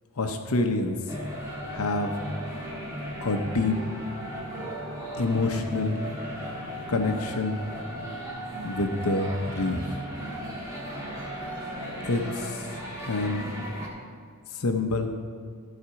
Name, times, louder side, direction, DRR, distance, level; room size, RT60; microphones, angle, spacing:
voice 1, 0.2-1.2 1.7-2.1 3.2-3.8 5.2-6.0 6.9-7.6 8.6-9.8 12.0-12.7 13.0-13.5 14.5-15.1, left 3 dB, 75° left, 5 dB, 0.8 m, -27 dB
sound 1, 1.1-13.9, equal, 15° right, 1.8 m, -36 dB
14.5 x 5.0 x 5.7 m, 2.1 s
head